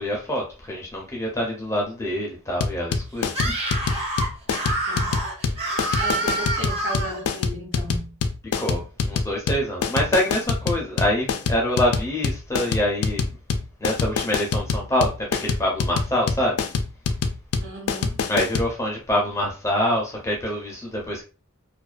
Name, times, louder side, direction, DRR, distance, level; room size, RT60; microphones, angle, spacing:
voice 1, 0.0-3.5 8.6-13.2 13.8-16.6 18.3-21.2, left 1 dB, 15° left, 0.6 m, -25 dB
sound 1, 2.6-18.7, left 5 dB, 85° left, 0.4 m, -25 dB
Screaming, 3.3-7.2, right 2 dB, 30° right, 0.7 m, -27 dB
voice 2, 4.9-5.2 6.0-8.2 17.6-18.3, right 1 dB, 60° right, 0.8 m, -35 dB
2.4 x 2.2 x 2.3 m
head